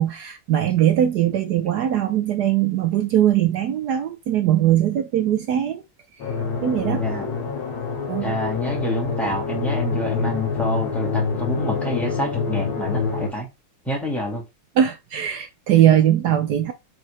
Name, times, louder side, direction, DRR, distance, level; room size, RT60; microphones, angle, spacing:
voice 1, 0.0-5.8 6.6-7.1 8.1-8.3 14.8-16.7, right 11 dB, 70° right, 1.0 m, -20 dB
sound 1, 6.2-13.3, left 5 dB, 90° left, 2.4 m, -26 dB
voice 2, 8.2-13.5 13.8-14.4, equal, ahead, 2.2 m, -27 dB
4.8 x 4.3 x 5.0 m
omnidirectional pair, 2.3 m